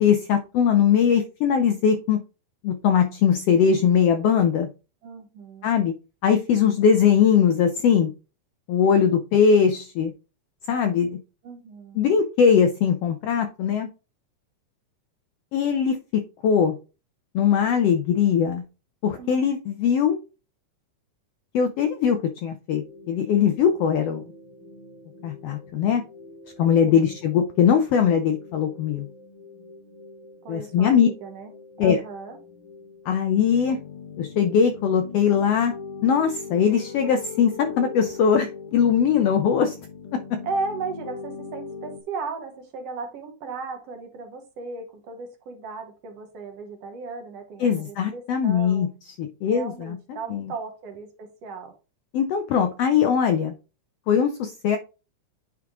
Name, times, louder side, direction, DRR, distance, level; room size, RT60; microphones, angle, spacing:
voice 1, 0.0-2.2 2.6-4.7 5.6-5.9 6.2-8.1 8.7-10.1 10.7-11.2 12.0-13.9 15.5-16.0 16.4-16.8 17.3-18.6 19.0-20.2 21.5-24.2 25.2-26.0 26.6-29.1 30.5-31.1 31.8-32.0 33.1-33.8 34.2-35.7 36.0-39.7 47.6-48.9 49.2-50.0 50.3-50.5 52.1-53.5 54.1-54.8, left 7 dB, 90° left, 7 dB, 1.3 m, -20 dB
voice 2, 5.0-5.8 8.8-9.2 11.4-12.1 19.2-19.5 26.6-27.2 30.4-31.5 31.8-32.4 40.4-48.9 49.5-51.7, right 4 dB, 60° right, 4 dB, 2.0 m, -36 dB
sound 1, 22.7-42.0, left 5 dB, 70° left, 1.2 m, -42 dB
9.3 x 3.6 x 3.7 m, 0.32 s
omnidirectional pair, 3.5 m